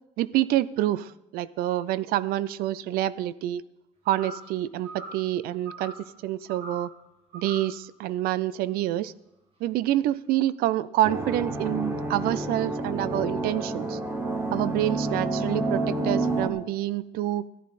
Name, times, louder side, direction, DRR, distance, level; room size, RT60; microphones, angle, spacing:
voice 1, 0.2-3.6 4.1-6.9 7.3-9.1 9.6-14.0 14.5-17.5, right 14 dB, 70° right, 19 dB, 0.5 m, -27 dB
sound 1, 4.1-4.5 4.8-5.3 5.7-6.1 6.5-6.9 7.3-7.8, right 1 dB, 35° right, 2.1 m, -41 dB
sound 2, 11.0-16.5, right 2 dB, 15° right, 1.1 m, -29 dB
13.5 x 11.5 x 4.1 m, 0.94 s
cardioid pair, 170°, 16 cm